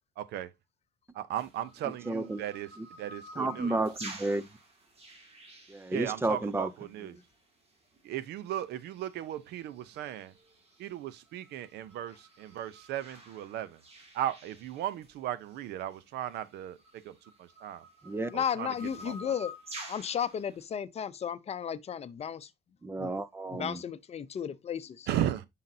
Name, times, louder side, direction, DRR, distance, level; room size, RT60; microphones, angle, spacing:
voice 1, 0.2-0.5 1.1-2.7 3.0-3.8 5.9-7.2 8.0-10.3 10.8-13.8 14.1-17.8 18.3-18.7 19.0-19.3 25.1-25.5, right 11 dB, 80° right, 0.7 m, -36 dB
sound 1, 1.4-6.6 8.0-8.1 8.6-9.2 9.7-15.2 15.6-15.7 16.3-20.6, equal, 35° right, 2.5 m, -49 dB
voice 2, 1.9-2.4 2.8-2.9 3.4-4.5 5.7-6.7 7.0-7.1 18.0-18.3 22.8-23.8, right 2 dB, 15° right, 0.5 m, -32 dB
voice 3, 18.3-19.5 19.9-22.5 23.0-23.1 23.5-25.1, left 8 dB, 40° left, 0.6 m, -34 dB
7.5 x 5.8 x 2.7 m
cardioid pair, 110°, 17 cm